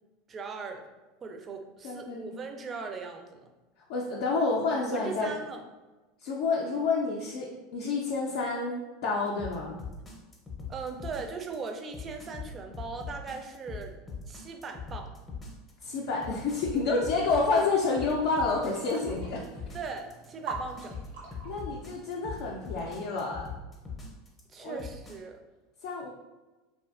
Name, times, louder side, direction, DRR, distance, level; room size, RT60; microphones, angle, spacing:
voice 1, 0.3-0.8 1.2-3.5 4.8-5.6 10.7-13.9 14.3-15.2 19.7-21.0 24.5-25.4, right 4 dB, 30° right, 5 dB, 0.4 m, -39 dB
voice 2, 1.8-2.4 3.9-5.3 6.2-9.8 15.8-19.4 21.4-23.5 24.6-24.8 25.8-26.1, left 3 dB, 65° left, -3 dB, 0.4 m, -29 dB
sound 1, 9.4-25.2, left 5 dB, 20° left, 0.6 m, -41 dB
sound 2, 15.8-23.2, right 4 dB, 85° right, 0.6 m, -46 dB
2.6 x 2.4 x 2.4 m, 1.2 s
hypercardioid pair, 95°, 0 cm